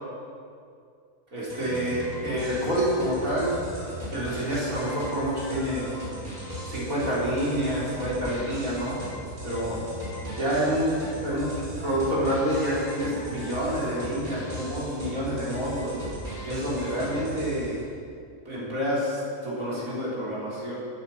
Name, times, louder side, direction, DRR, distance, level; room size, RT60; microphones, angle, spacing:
voice 1, 1.3-3.5 4.0-5.8 6.7-9.0 9.4-9.8 10.3-11.5 11.8-16.0 16.4-17.8 18.5-20.7, equal, 65° right, -8 dB, 4.2 m, -28 dB
sound 1, 1.5-17.8, right 1 dB, 25° right, 4.2 m, -37 dB
17.0 x 9.9 x 5.5 m, 2.4 s
omnidirectional pair, 1.6 m